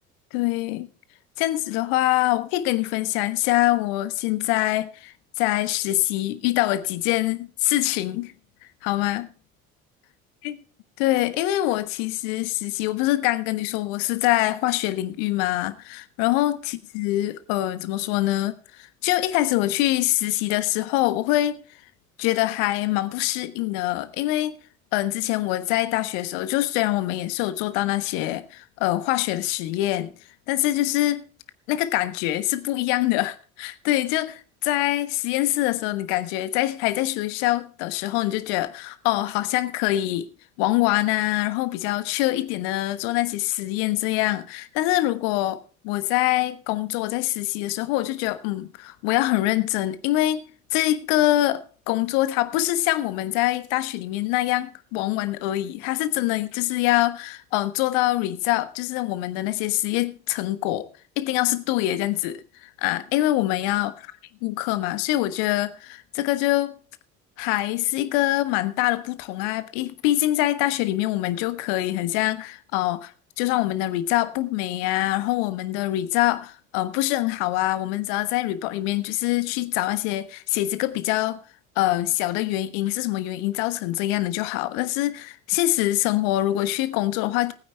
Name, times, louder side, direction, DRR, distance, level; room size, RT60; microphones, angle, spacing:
voice 1, 0.3-0.9 1.4-8.3 8.8-9.3 10.4-10.5 11.0-21.6 22.2-24.6 24.9-30.1 30.5-31.2 31.7-40.3 40.6-50.4 50.7-60.9 61.2-63.9 64.4-66.8 67.4-73.1 73.4-81.4 81.8-87.5, left 16 dB, 60° left, 1.3 m, -24 dB
20.0 x 9.7 x 3.4 m
figure-of-eight pair, 60°, 42 cm